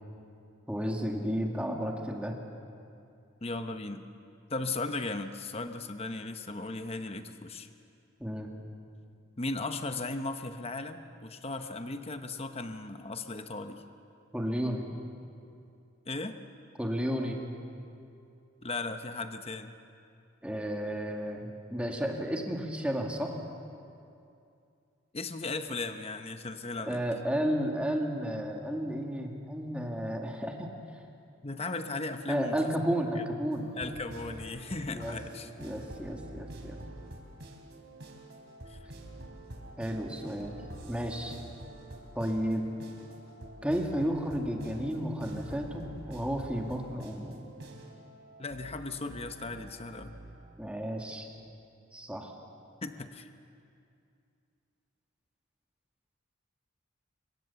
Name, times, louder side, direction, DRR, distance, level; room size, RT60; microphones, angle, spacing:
voice 1, 0.7-2.4 8.2-8.5 14.3-14.9 16.8-17.4 20.4-23.4 26.9-30.7 32.3-33.8 34.9-35.2 35.6-36.8 39.8-40.6 40.9-41.4 42.1-42.7 43.6-47.4 50.6-51.3 51.9-52.3, equal, 5° right, 1 dB, 2.1 m, -32 dB
voice 2, 3.4-4.0 4.5-7.7 9.4-13.8 16.1-16.4 18.6-19.7 25.1-27.0 31.4-32.6 33.1-33.2 33.7-35.5 38.7-38.8 48.4-50.2 52.8-53.3, left 3 dB, 30° left, 7 dB, 1.0 m, -37 dB
sound 1, 33.5-50.3, right 1 dB, 60° right, 3.4 m, -47 dB
24.5 x 22.0 x 7.0 m, 2.5 s
head